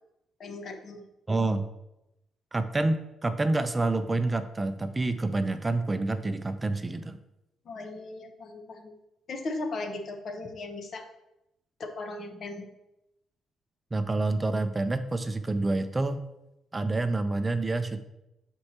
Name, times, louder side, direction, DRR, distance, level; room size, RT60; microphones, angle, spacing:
voice 1, 0.4-1.0 7.7-8.9 9.3-11.0 11.8-12.7, left 2 dB, 55° left, 5 dB, 0.9 m, -37 dB
voice 2, 1.3-1.7 2.5-7.2 13.9-16.2 16.7-18.0, right 2 dB, 20° right, 10 dB, 0.4 m, -28 dB
7.7 x 4.4 x 2.8 m, 0.89 s
cardioid pair, 90°, 0 cm